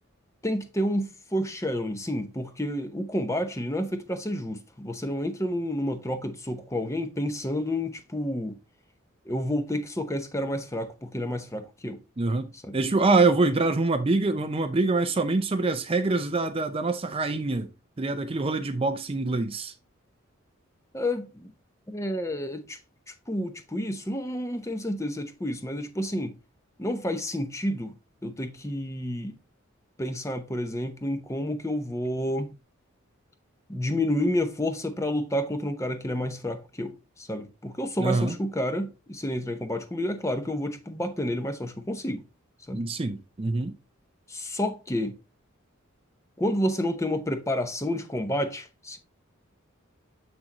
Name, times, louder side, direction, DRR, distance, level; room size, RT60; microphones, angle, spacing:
voice 1, 0.4-8.6 9.3-12.0 12.7-12.8 20.9-21.5 21.9-22.8 23.3-26.4 26.8-27.9 28.2-29.4 30.0-32.5 33.7-42.2 42.7-42.8 44.3-45.2 46.4-49.0, left 1 dB, 15° left, 0.7 m, -30 dB
voice 2, 12.2-17.7 18.0-19.7 38.0-38.3 42.7-43.7, right 3 dB, 25° right, 0.5 m, -25 dB
7.4 x 6.2 x 2.9 m
head